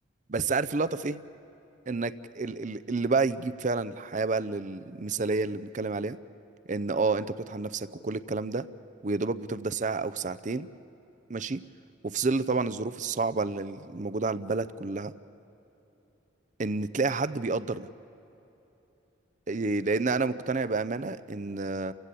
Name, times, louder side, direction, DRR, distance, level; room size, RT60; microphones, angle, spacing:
voice 1, 0.3-1.2 1.9-6.2 6.7-8.7 9.0-10.7 11.3-11.6 12.0-15.1 16.6-17.9 19.5-21.9, right 3 dB, 40° right, 14 dB, 0.6 m, -29 dB
30.0 x 16.0 x 8.3 m, 3.0 s
head